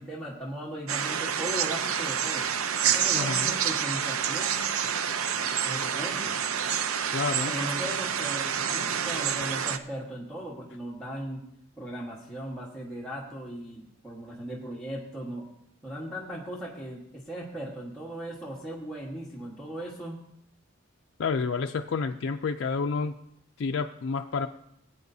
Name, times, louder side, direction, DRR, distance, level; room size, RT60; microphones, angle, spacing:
voice 1, 0.0-2.5 2.8-4.7 5.6-6.3 7.5-11.4 11.8-15.5 15.8-20.2, equal, 5° left, -6 dB, 1.4 m, -38 dB
sound 1, 0.9-9.8, right 8 dB, 85° right, 0.6 m, -28 dB
voice 2, 3.1-3.5 7.1-7.5 21.2-23.2 23.6-24.5, left 4 dB, 60° left, 4 dB, 0.4 m, -29 dB
20.0 x 9.0 x 2.7 m, 0.77 s
head